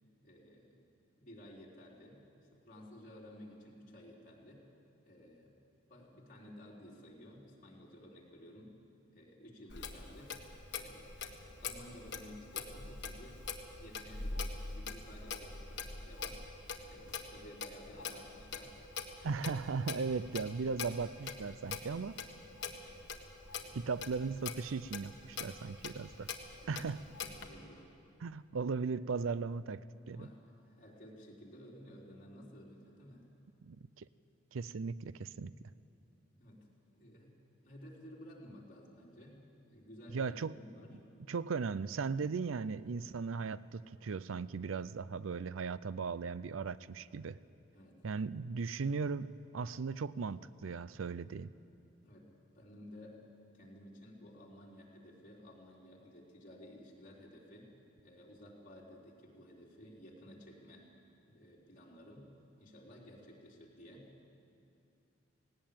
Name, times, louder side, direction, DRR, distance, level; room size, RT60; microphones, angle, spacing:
voice 1, 0.2-0.8 1.2-4.7 5.0-5.6 5.9-8.8 9.1-10.4 10.7-11.2 11.6-13.4 13.8-16.4 16.9-18.8 22.8-23.0 23.6-23.8 26.6-26.9 27.2-27.9 30.1-33.3 36.3-37.3 37.6-41.0 47.7-48.0 52.0-53.2 53.5-57.7 58.0-60.9 61.2-62.3 62.6-64.1, equal, 40° left, -4 dB, 4.0 m, -54 dB
Clock, 9.7-27.5, left 5 dB, 60° left, 1.6 m, -44 dB
voice 2, 19.2-22.2 23.7-26.3 26.7-27.0 28.2-30.3 33.6-34.1 34.5-35.5 40.1-40.5 41.3-47.4 48.0-51.5, right 5 dB, 85° right, 17 dB, 0.5 m, -37 dB
18.5 x 18.0 x 8.8 m, 2.6 s
head